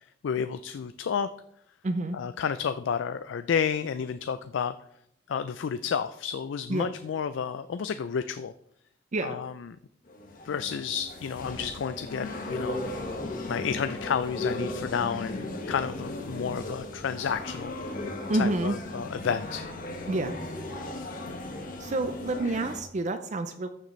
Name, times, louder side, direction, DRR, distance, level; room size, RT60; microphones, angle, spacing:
voice 1, 0.2-1.3 2.1-4.7 5.3-8.5 9.2-9.8 10.4-13.2 13.5-19.7 21.3-21.4, left 7 dB, 85° left, 12 dB, 0.4 m, -31 dB
voice 2, 1.8-2.2 6.7-6.9 9.1-9.4 18.3-18.8 20.1-20.4 21.8-23.7, right 2 dB, 40° right, 9 dB, 0.5 m, -28 dB
sound 1, 10.1-22.8, left 2 dB, 50° left, 1.4 m, -36 dB
14.0 x 6.7 x 3.1 m, 0.76 s
head